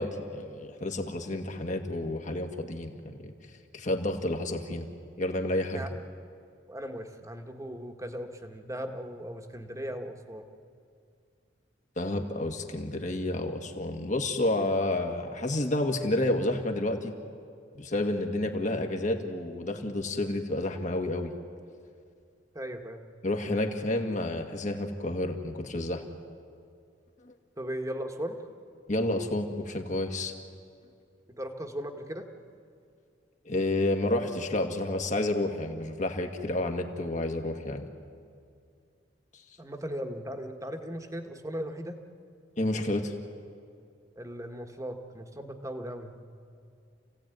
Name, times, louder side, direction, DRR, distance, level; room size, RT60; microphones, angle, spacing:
voice 1, 0.0-3.3 3.7-4.9 5.2-5.9 12.0-17.1 17.7-21.3 23.2-26.0 27.2-27.3 28.9-30.3 33.5-37.9 42.6-43.1, left 1 dB, 45° left, 4 dB, 2.0 m, -30 dB
voice 2, 6.7-10.4 22.5-23.0 27.6-28.4 31.3-32.3 39.6-42.0 44.2-46.2, equal, 20° right, 5 dB, 1.6 m, -37 dB
29.0 x 16.0 x 9.3 m, 2.3 s
head